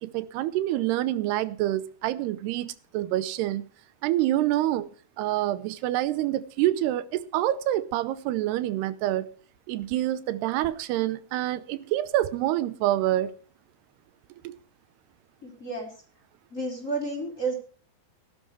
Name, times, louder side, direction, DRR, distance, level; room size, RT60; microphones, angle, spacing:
voice 1, 0.0-3.6 4.0-4.9 5.2-9.3 9.7-13.3 14.4-14.6, right 14 dB, 85° right, 2.8 m, -27 dB
voice 2, 15.4-15.9 16.5-17.5, right 3 dB, 20° left, 3.9 m, -31 dB
18.5 x 12.0 x 3.2 m
omnidirectional pair, 4.7 m